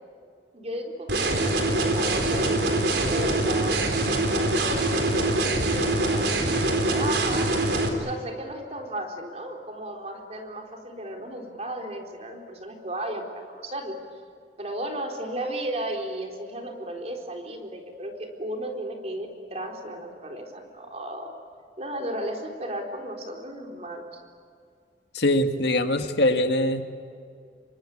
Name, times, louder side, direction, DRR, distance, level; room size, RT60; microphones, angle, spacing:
voice 1, 0.5-3.8 4.3-7.5 8.0-14.0 14.6-21.3 21.8-24.2, right 1 dB, 35° right, 2 dB, 4.0 m, -35 dB
sound 1, 1.1-7.9, right 2 dB, 75° right, 4.1 m, -24 dB
voice 2, 25.1-26.8, left 1 dB, 70° left, 6 dB, 1.9 m, -22 dB
28.5 x 24.0 x 8.7 m, 2.2 s
head